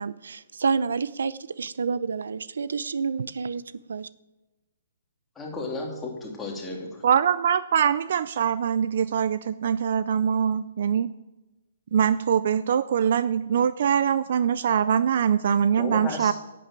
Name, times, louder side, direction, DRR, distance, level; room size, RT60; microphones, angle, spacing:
voice 1, 0.0-3.6 3.9-4.1, right 5 dB, 90° right, 0.6 m, -29 dB
voice 2, 5.4-7.0 15.8-16.3, left 3 dB, 5° left, 2.7 m, -34 dB
voice 3, 7.0-11.1 11.9-16.3, right 8 dB, 50° right, 0.4 m, -23 dB
11.0 x 9.2 x 8.9 m
hypercardioid pair, 170°, 0 cm